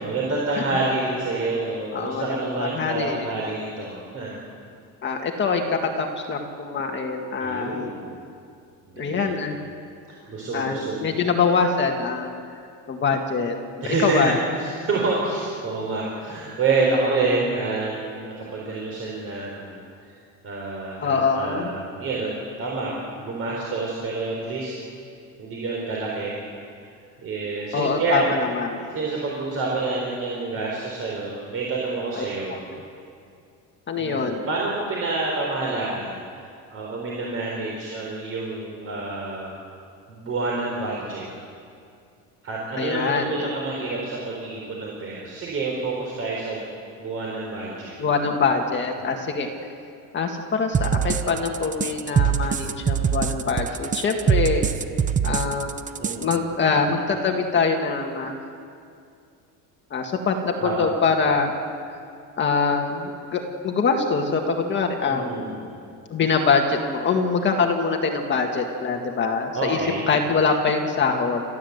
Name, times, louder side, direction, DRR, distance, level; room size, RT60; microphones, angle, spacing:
voice 1, 0.0-4.4 7.4-8.1 8.9-9.3 10.3-11.1 13.8-14.3 14.6-19.8 20.4-22.3 22.6-24.7 25.4-26.4 27.2-28.3 28.9-32.6 34.0-36.2 36.7-39.6 40.1-41.3 42.4-46.6 47.0-48.0 49.0-49.1 56.0-56.4 56.6-56.8 60.6-60.9 65.1-65.8 69.5-70.1, right 3 dB, 40° right, -3 dB, 4.0 m, -28 dB
voice 2, 1.9-3.3 5.0-7.9 9.0-9.6 10.5-12.3 12.9-13.6 13.8-14.4 21.0-21.7 27.7-28.9 32.2-32.3 33.9-34.4 42.8-43.5 48.0-49.5 50.1-54.6 55.2-55.7 56.2-58.4 59.9-61.5 62.4-65.2 66.1-69.8 70.1-71.4, left 5 dB, 30° left, 3 dB, 1.8 m, -24 dB
sound 1, 50.7-56.4, right 7 dB, 20° right, 0.6 m, -23 dB
30.0 x 14.0 x 8.1 m, 2.4 s
cardioid pair, 165°, 36 cm